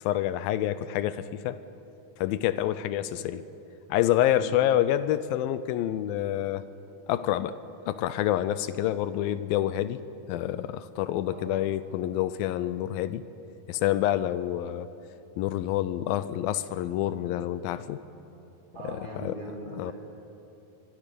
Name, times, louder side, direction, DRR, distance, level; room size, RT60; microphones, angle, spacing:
voice 1, 0.0-1.6 2.2-3.4 3.9-6.6 7.1-7.6 7.9-10.0 10.3-13.3 13.7-14.9 15.4-18.0 18.8-19.4 19.8-19.9, left 12 dB, 80° left, 14 dB, 2.3 m, -27 dB
voice 2, 11.2-11.6 18.7-19.9, right 2 dB, 25° right, -2 dB, 3.7 m, -40 dB
23.0 x 22.5 x 6.8 m, 2.9 s
omnidirectional pair, 4.5 m